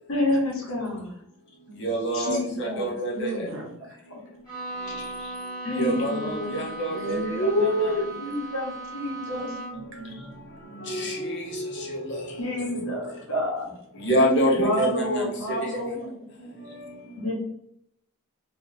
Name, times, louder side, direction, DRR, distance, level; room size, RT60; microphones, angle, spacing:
voice 1, 0.1-1.1 2.1-2.9 3.3-3.5 4.1-4.2 4.8-5.3 5.6-6.6 7.4-9.5 12.4-13.7 14.6-16.1 17.2-17.3, left 1 dB, 70° left, 1.2 m, -28 dB
voice 2, 1.8-3.5 5.8-8.0 10.8-13.0 14.0-15.3 15.6-15.8 16.8-16.9, right 1 dB, 55° left, 0.9 m, -27 dB
voice 3, 2.7-3.7 6.9-7.9 9.3-10.3 10.7-11.0 12.6-12.7 15.9-16.5 17.0-17.3, right 1 dB, 60° right, 1.1 m, -38 dB
Bowed string instrument, 4.4-10.0, right 2 dB, 15° left, 1.4 m, -37 dB
3.8 x 2.6 x 2.8 m
head